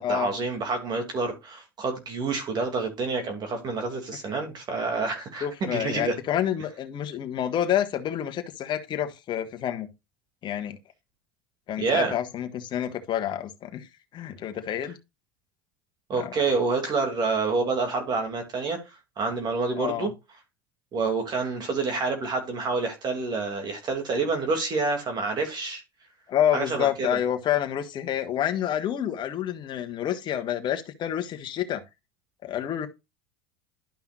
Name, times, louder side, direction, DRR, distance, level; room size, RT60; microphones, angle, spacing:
voice 1, 0.0-6.2 11.8-12.1 16.1-18.8 19.2-20.1 20.9-25.8 26.5-27.2, right 4 dB, 35° right, 2.5 m, -28 dB
voice 2, 5.4-9.9 10.4-10.8 11.7-13.9 14.1-15.0 16.2-16.3 19.7-20.1 26.3-31.8 32.4-32.9, left 10 dB, 40° left, 1.5 m, -28 dB
12.0 x 5.6 x 2.4 m
supercardioid pair, 105°, 12 cm